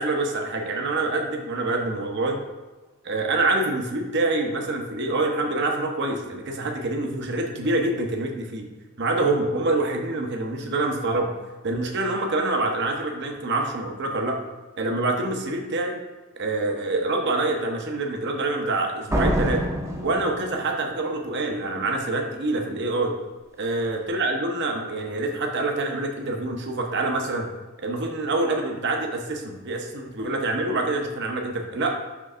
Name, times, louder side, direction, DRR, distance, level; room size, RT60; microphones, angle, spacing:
voice 1, 0.0-2.4 3.0-8.7 9.0-11.3 11.6-14.4 14.8-16.0 16.4-19.6 20.0-23.2 23.6-27.5 27.8-32.0, right 2 dB, 60° right, 3 dB, 0.8 m, -26 dB
Slam, 19.1-21.0, equal, 15° right, 0.6 m, -26 dB
6.0 x 3.2 x 5.5 m, 1.3 s
head